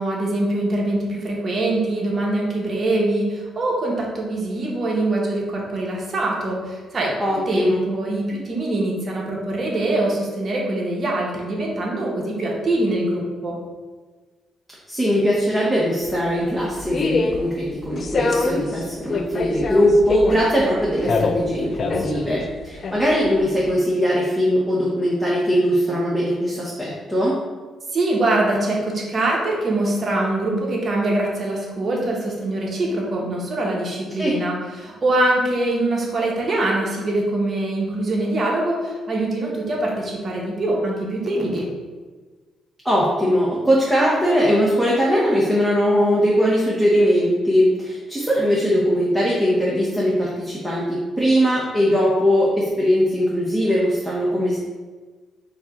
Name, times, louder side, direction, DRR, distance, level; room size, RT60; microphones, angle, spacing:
voice 1, 0.0-13.6 27.9-41.7, right 2 dB, 40° right, -2 dB, 1.2 m, -23 dB
voice 2, 7.2-7.8 14.9-27.4 34.2-34.3 42.8-54.6, equal, 5° right, -6 dB, 0.9 m, -20 dB
sound 1, 16.0-23.7, left 3 dB, 45° left, 0.4 m, -26 dB
4.8 x 2.4 x 4.2 m, 1.4 s
cardioid pair, 90°, 0 cm